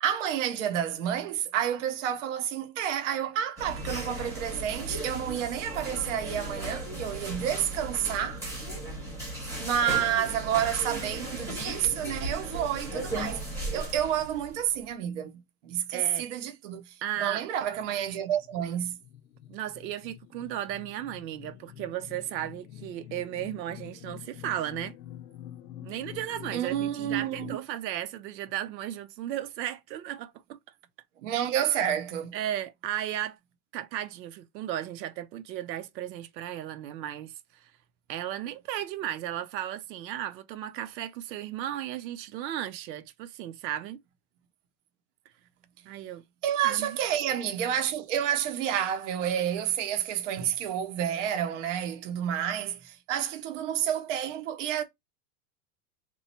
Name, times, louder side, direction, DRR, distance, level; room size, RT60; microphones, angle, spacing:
voice 1, 0.0-8.4 9.6-13.4 13.7-19.0 26.5-27.6 31.2-32.4 46.4-54.8, right 10 dB, 45° right, 0.6 m, -29 dB
sound 1, 3.6-14.7, right 1 dB, 5° right, 0.9 m, -36 dB
voice 2, 15.9-16.3 17.0-17.4 19.5-24.9 25.8-30.6 31.3-31.4 32.3-33.4 33.7-37.7 38.1-44.0 45.9-46.2 46.6-47.0, right 12 dB, 90° right, 0.7 m, -35 dB
sound 2, 17.8-27.6, left 11 dB, 75° left, 0.6 m, -46 dB
3.0 x 2.3 x 4.1 m
supercardioid pair, 175°, 50 cm